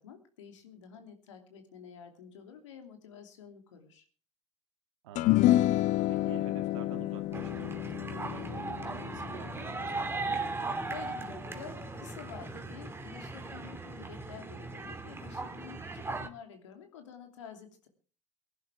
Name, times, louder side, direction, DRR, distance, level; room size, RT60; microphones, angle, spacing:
voice 1, 0.0-4.1 10.9-17.9, left 7 dB, 80° left, 5 dB, 2.9 m, -49 dB
voice 2, 5.0-5.8 6.1-10.6, right 9 dB, 75° right, 6 dB, 2.3 m, -49 dB
sound 1, 5.2-11.7, left 15 dB, 55° left, 0.6 m, -30 dB
sound 2, 7.3-16.3, right 3 dB, 15° right, 2.4 m, -38 dB
23.5 x 11.0 x 3.5 m, 0.39 s
figure-of-eight pair, 60°, 15 cm